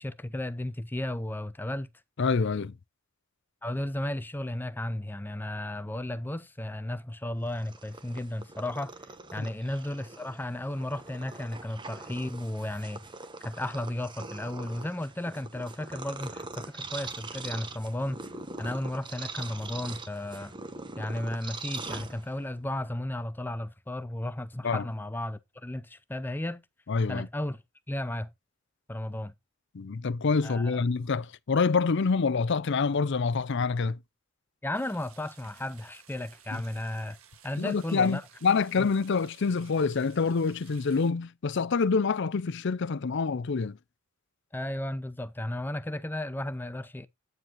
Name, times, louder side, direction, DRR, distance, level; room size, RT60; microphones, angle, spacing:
voice 1, 0.0-1.9 3.6-8.9 9.3-13.1 13.4-18.2 18.6-20.6 21.0-26.6 27.1-27.6 27.9-28.3 28.9-29.3 30.4-30.8 34.6-37.2 37.4-38.2 38.8-38.9 44.5-47.1, left 1 dB, 10° left, 0.5 m, -34 dB
voice 2, 2.2-2.7 9.4-9.5 24.6-24.9 26.9-27.3 29.7-34.0 36.5-36.6 37.6-43.8, left 4 dB, 55° left, 0.5 m, -26 dB
Purr, 7.4-22.6, right 3 dB, 20° right, 0.9 m, -42 dB
sound 1, 34.7-41.1, right 8 dB, 80° right, 1.9 m, -56 dB
9.5 x 7.2 x 3.0 m
head